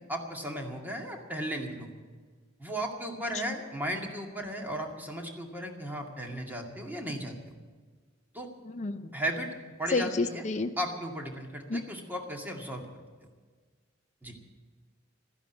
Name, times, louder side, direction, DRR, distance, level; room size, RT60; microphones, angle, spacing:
voice 1, 0.1-1.9 2.6-7.4 8.3-8.5 9.1-9.5 9.8-10.5 10.8-12.8 14.2-14.4, right 1 dB, 10° right, 1 dB, 2.1 m, -35 dB
voice 2, 8.6-9.1 9.9-10.7 11.7-11.8, left 3 dB, 35° left, 7 dB, 0.6 m, -30 dB
14.0 x 10.5 x 9.1 m, 1.5 s
head